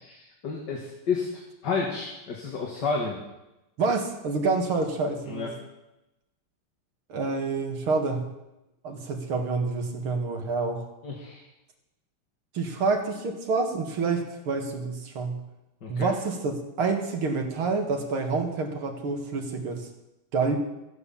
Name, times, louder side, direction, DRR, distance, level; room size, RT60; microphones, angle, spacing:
voice 1, 0.0-1.3 1.6-3.2 5.3-5.5 11.0-11.4 15.8-16.1, left 5 dB, 55° left, -1 dB, 2.3 m, -30 dB
voice 2, 3.8-5.5 7.1-8.3 8.8-10.9 12.5-15.4 15.9-19.9 20.3-20.6, right 4 dB, 85° right, 3 dB, 2.7 m, -28 dB
13.5 x 9.4 x 7.1 m, 0.96 s
omnidirectional pair, 2.3 m